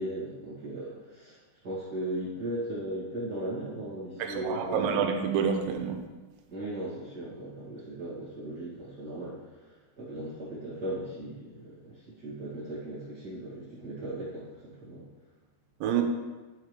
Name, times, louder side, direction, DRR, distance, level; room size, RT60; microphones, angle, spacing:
voice 1, 0.0-1.4 1.6-5.0 6.5-9.4 10.0-15.1, right 1 dB, 40° right, -11 dB, 1.4 m, -37 dB
voice 2, 4.2-6.0 15.8-16.0, right 7 dB, 85° right, 4 dB, 3.1 m, -28 dB
10.5 x 7.3 x 3.2 m, 1.2 s
omnidirectional pair, 5.2 m